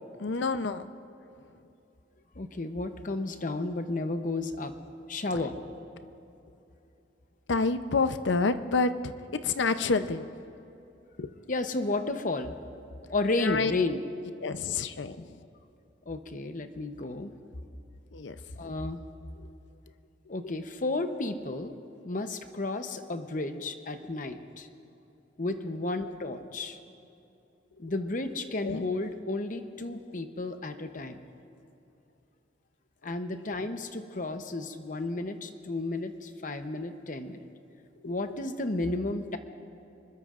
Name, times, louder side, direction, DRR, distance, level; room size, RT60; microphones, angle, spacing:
voice 1, 0.2-0.8 7.5-9.1 9.4-10.2 11.2-11.3 13.4-13.7 14.4-15.2 18.1-18.3 28.6-28.9, left 4 dB, 90° left, 11 dB, 0.7 m, -28 dB
voice 2, 2.4-4.7 5.1-5.6 11.5-12.6 13.1-14.0 16.1-17.3 18.6-19.0 20.3-21.8 22.0-24.7 25.4-26.8 27.8-31.2 33.0-37.4 38.0-39.4, left 2 dB, 45° left, 8 dB, 0.8 m, -32 dB
25.0 x 21.0 x 2.5 m, 2.8 s
head